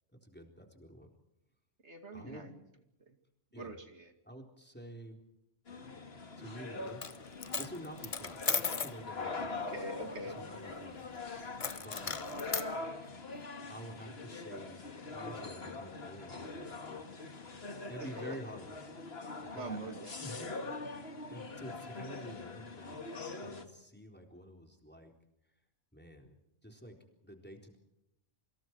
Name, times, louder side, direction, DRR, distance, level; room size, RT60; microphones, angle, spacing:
voice 1, 0.2-1.1 2.1-2.5 3.5-3.8 4.3-5.2 6.4-7.2 7.6-9.6 10.2-11.1 11.7-12.2 13.0-13.1 13.7-14.8 15.1-17.0 17.9-18.9 19.4-20.5 20.8-25.1 25.9-26.4 26.6-27.8, right 1 dB, 10° left, 3 dB, 3.9 m, -49 dB
voice 2, 1.8-2.6 3.1-3.2 3.6-4.1 9.2-10.4 16.8-16.9 18.0-18.3 19.5-20.1, right 2 dB, 65° right, 6 dB, 2.6 m, -44 dB
sound 1, 5.7-23.7, left 3 dB, 50° left, 2.1 m, -43 dB
Coin (dropping), 6.9-7.2 7.4-9.0 11.6-12.7, left 5 dB, 30° left, 0.8 m, -36 dB
28.0 x 26.0 x 4.7 m, 0.86 s
omnidirectional pair, 1.3 m